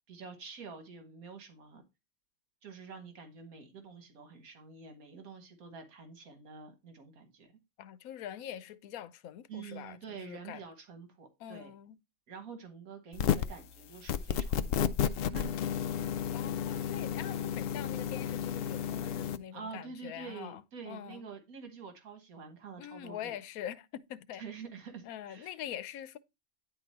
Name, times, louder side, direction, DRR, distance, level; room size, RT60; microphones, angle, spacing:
voice 1, 0.1-1.8 2.6-7.5 9.5-11.7 12.3-14.9 15.3-16.0 19.5-23.3 24.4-25.5, right 5 dB, 85° right, 1.7 m, -47 dB
voice 2, 7.8-10.0 10.3-10.6 11.4-12.0 16.3-21.2 22.8-24.4 25.1-26.2, left 10 dB, 90° left, 1.1 m, -44 dB
sound 1, 13.1-13.6 14.1-19.4, left 8 dB, 70° left, 0.5 m, -32 dB
9.7 x 3.9 x 4.2 m
omnidirectional pair, 1.5 m